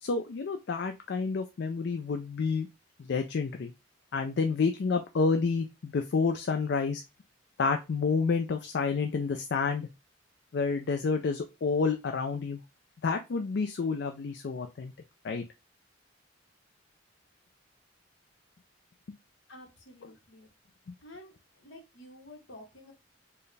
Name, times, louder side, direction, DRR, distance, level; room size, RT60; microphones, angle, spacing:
voice 1, 0.0-2.7 3.0-3.7 4.1-7.0 7.6-9.9 10.5-12.6 13.0-14.9 15.2-15.4, left 4 dB, 60° left, 5 dB, 0.4 m, -29 dB
voice 2, 19.5-20.5 21.0-22.9, left 1 dB, 75° left, 3 dB, 1.1 m, -50 dB
4.4 x 2.1 x 3.2 m, 0.25 s
head